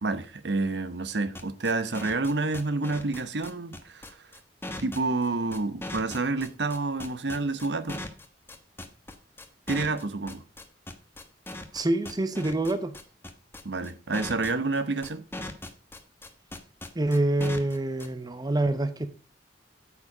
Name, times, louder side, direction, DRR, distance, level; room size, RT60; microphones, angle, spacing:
voice 1, 0.0-4.1 4.8-8.0 9.7-10.4 13.6-15.3, right 3 dB, 70° right, 0.9 m, -29 dB
sound 1, 1.1-18.1, left 1 dB, 15° left, 1.1 m, -39 dB
voice 2, 11.7-12.9 16.9-19.1, right 2 dB, 25° right, 0.8 m, -26 dB
8.4 x 7.4 x 4.9 m
head